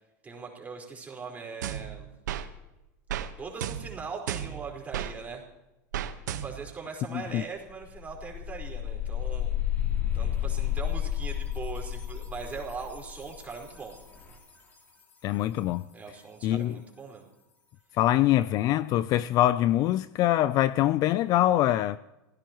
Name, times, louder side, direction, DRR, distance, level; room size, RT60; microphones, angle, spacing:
voice 1, 0.2-2.1 3.4-5.4 6.3-9.5 10.1-13.9 15.9-17.3, right 5 dB, 15° right, 4.6 m, -40 dB
sound 1, 1.6-2.5 3.1-3.3 3.6-5.1 5.9-6.7, right 10 dB, 90° right, 1.3 m, -34 dB
voice 2, 7.1-7.4 15.2-15.8 16.4-16.8 18.0-22.0, left 14 dB, 40° left, 0.4 m, -24 dB
sound 2, 7.3-7.4 7.7-14.5, left 11 dB, 20° left, 3.5 m, -32 dB
27.0 x 16.0 x 3.1 m
supercardioid pair, 135°, 9 cm